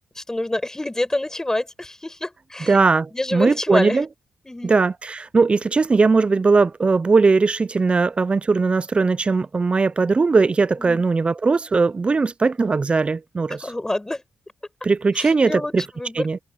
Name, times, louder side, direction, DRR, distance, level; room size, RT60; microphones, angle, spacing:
voice 1, 0.2-2.8 3.1-4.0 4.4-4.7 10.8-11.0 13.5-14.2 15.1-16.3, left 1 dB, 15° left, 5.6 m, -27 dB
voice 2, 2.7-4.1 4.6-13.7 14.8-15.8 16.2-16.4, right 4 dB, 35° right, 0.6 m, -19 dB
supercardioid pair, 50°, 3 cm